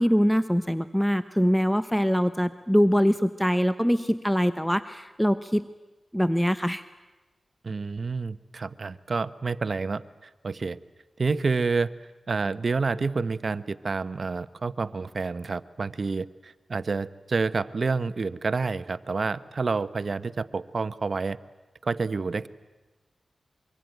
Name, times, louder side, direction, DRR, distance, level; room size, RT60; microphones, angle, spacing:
voice 1, 0.0-5.7 6.1-6.8, equal, 5° left, 12 dB, 0.9 m, -23 dB
voice 2, 7.6-10.8 11.2-11.9 12.3-21.4 21.8-22.5, right 4 dB, 60° right, 14 dB, 0.9 m, -29 dB
24.5 x 24.0 x 9.2 m, 1.1 s
cardioid pair, 50°, 0 cm